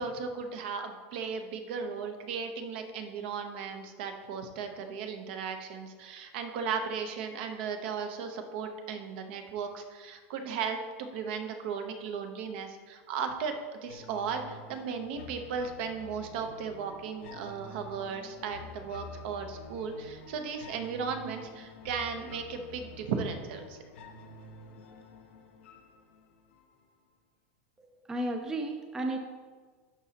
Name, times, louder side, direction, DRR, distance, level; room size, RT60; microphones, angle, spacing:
voice 1, 0.0-23.8, right 6 dB, 60° right, 6 dB, 0.8 m, -36 dB
sound 1, 13.9-26.9, left 2 dB, 75° left, 0.7 m, -49 dB
voice 2, 28.0-29.2, right 1 dB, 10° right, 3 dB, 0.4 m, -33 dB
11.0 x 4.0 x 2.8 m, 1.5 s
supercardioid pair, 150°, 6 cm